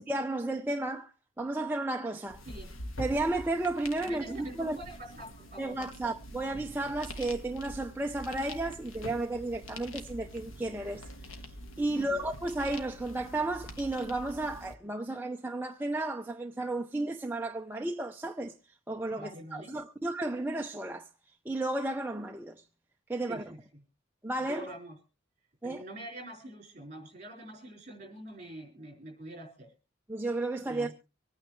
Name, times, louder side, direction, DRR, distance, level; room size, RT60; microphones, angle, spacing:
voice 1, 0.0-2.4 3.0-4.8 5.6-18.5 18.9-21.1 21.4-22.6 23.1-23.5 24.2-24.7 25.6-25.8 30.1-30.9, right 2 dB, 10° right, 0.6 m, -33 dB
sound 1, 2.3-14.7, equal, 80° left, 1.6 m, -45 dB
voice 2, 4.0-5.7 11.9-12.2 19.1-19.8 23.2-23.8 24.5-25.0 25.6-29.7 30.6-30.9, right 1 dB, 35° right, 4.7 m, -45 dB
25.0 x 9.3 x 3.1 m
head